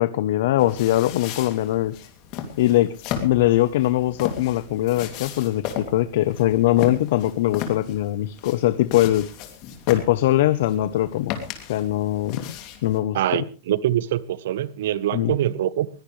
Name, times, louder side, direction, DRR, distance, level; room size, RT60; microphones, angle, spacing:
voice 1, 0.0-2.1 2.6-2.9 3.2-9.3 9.9-11.3 11.7-13.4 15.1-15.3, left 14 dB, 65° left, 0.8 m, -21 dB
sound 1, 0.6-13.0, left 9 dB, 40° left, 2.7 m, -36 dB
voice 2, 13.1-15.9, right 12 dB, 75° right, 1.0 m, -24 dB
21.0 x 16.5 x 3.3 m
supercardioid pair, 160°, 0 cm